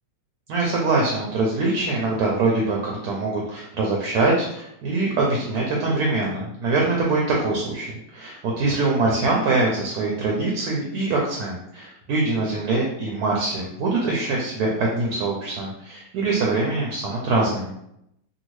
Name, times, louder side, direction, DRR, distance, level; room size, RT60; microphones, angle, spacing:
voice 1, 0.5-17.7, right 3 dB, 70° right, -2 dB, 1.0 m, -23 dB
2.7 x 2.7 x 3.0 m, 0.78 s
omnidirectional pair, 1.9 m